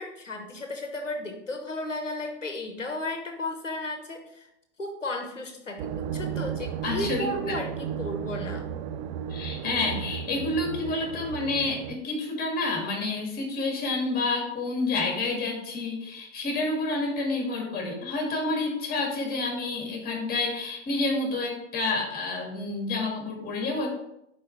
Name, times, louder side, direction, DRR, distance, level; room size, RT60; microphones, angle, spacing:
voice 1, 0.0-4.5 4.8-8.6, left 1 dB, 85° left, 4 dB, 1.0 m, -34 dB
sound 1, 5.8-12.0, right 9 dB, 40° right, 0.4 m, -34 dB
voice 2, 6.8-7.3 9.3-23.9, left 3 dB, 25° left, 1 dB, 1.9 m, -29 dB
5.5 x 4.4 x 4.5 m, 0.81 s
figure-of-eight pair, 90°, 36 cm